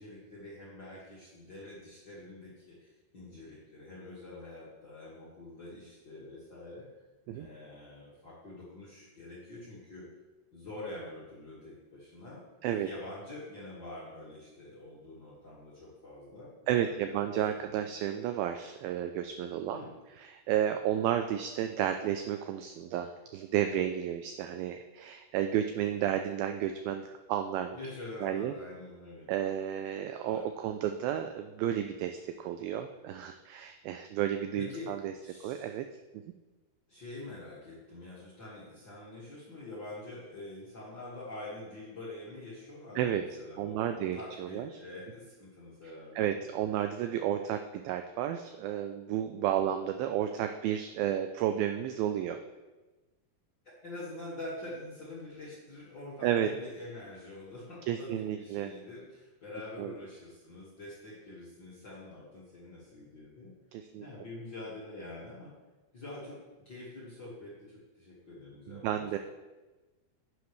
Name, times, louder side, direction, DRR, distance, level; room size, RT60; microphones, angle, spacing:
voice 1, 0.0-7.0 7.3-10.1 10.5-12.4 12.8-17.2 17.8-17.9 19.7-19.9 27.7-29.3 30.2-30.4 34.6-34.9 35.2-35.7 36.9-46.4 53.8-63.5 63.9-65.5 65.9-66.4 66.6-69.1, left 2 dB, 45° left, -8 dB, 1.5 m, -46 dB
voice 2, 16.7-19.8 20.2-27.8 28.2-28.5 29.3-35.1 35.4-35.9 36.1-36.2 43.0-43.2 43.6-44.8 46.2-52.4 56.2-56.5 57.9-58.7 59.8-59.9 63.7-64.0 68.7-69.2, right 10 dB, 85° right, 7 dB, 2.1 m, -32 dB
10.0 x 8.1 x 3.2 m, 1.2 s
omnidirectional pair, 4.7 m